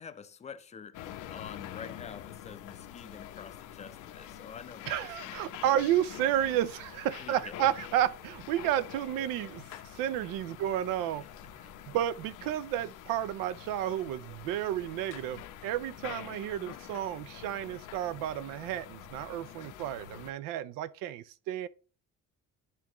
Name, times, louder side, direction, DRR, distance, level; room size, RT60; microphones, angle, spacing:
voice 1, 0.0-5.6 7.2-7.6 11.2-11.9, left 6 dB, 20° left, 0.4 m, -48 dB
sound 1, 0.9-20.3, left 11 dB, 70° left, 0.7 m, -46 dB
voice 2, 4.9-9.6 9.9-11.2 11.9-21.7, right 11 dB, 90° right, 0.6 m, -31 dB
10.5 x 3.6 x 3.0 m
cardioid pair, 155°, 32 cm